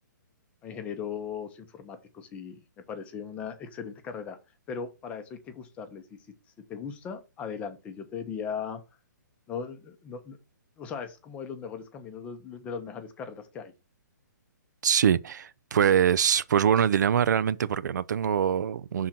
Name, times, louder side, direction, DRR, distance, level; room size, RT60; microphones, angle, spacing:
voice 1, 0.6-4.4 4.7-6.2 6.7-8.8 9.5-10.4 10.8-13.7, left 6 dB, 10° left, 0.7 m, -38 dB
voice 2, 14.8-19.1, right 8 dB, 65° right, 0.4 m, -24 dB
6.0 x 3.8 x 5.8 m
hypercardioid pair, 165°, 11 cm